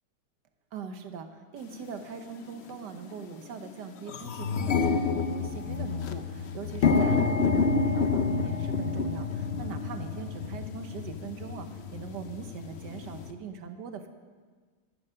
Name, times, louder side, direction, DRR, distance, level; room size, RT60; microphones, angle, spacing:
voice 1, 0.7-14.1, right 6 dB, 75° right, 8 dB, 1.5 m, -41 dB
sound 1, 1.7-1.8 2.6-2.8 3.2-3.3 3.6-13.3, left 4 dB, 60° left, 0.6 m, -29 dB
12.5 x 10.5 x 5.6 m, 1.5 s
omnidirectional pair, 1.9 m